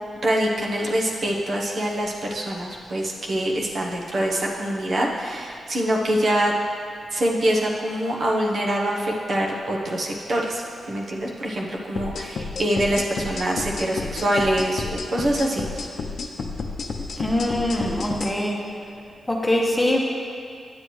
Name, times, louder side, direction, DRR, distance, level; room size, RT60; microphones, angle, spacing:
voice 1, 0.2-6.5 7.1-15.9, right 1 dB, 55° right, -2 dB, 1.0 m, -24 dB
sound 1, 11.9-18.3, left 4 dB, 70° left, 0.6 m, -31 dB
voice 2, 17.2-18.6 19.3-20.0, left 1 dB, 10° left, -1 dB, 1.1 m, -23 dB
9.5 x 7.6 x 3.2 m, 2.3 s
cardioid pair, 80°, 0 cm